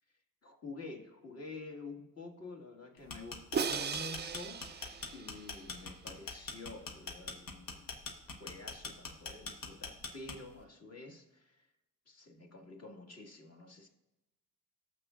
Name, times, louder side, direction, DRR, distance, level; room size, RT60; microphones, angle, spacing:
voice 1, 0.4-8.0 8.4-11.7 12.1-13.9, left 2 dB, 40° left, 2 dB, 1.9 m, -49 dB
sound 1, 3.0-10.6, left 4 dB, 60° left, 1.2 m, -43 dB
Crash cymbal, 3.5-5.7, right 6 dB, 25° right, 0.5 m, -37 dB
18.0 x 6.4 x 2.5 m, 0.99 s
supercardioid pair, 60°, 39 cm